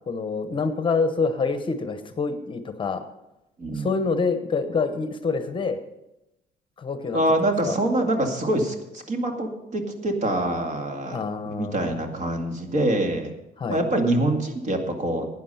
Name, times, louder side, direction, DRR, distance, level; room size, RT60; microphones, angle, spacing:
voice 1, 0.1-3.0 3.7-5.8 6.8-7.8 11.1-12.0 13.6-13.8, left 4 dB, 30° left, 9 dB, 1.0 m, -27 dB
voice 2, 7.1-13.3 13.7-15.3, right 1 dB, 45° right, 4 dB, 2.1 m, -25 dB
12.0 x 9.4 x 5.7 m, 0.92 s
cardioid pair, 110°, 17 cm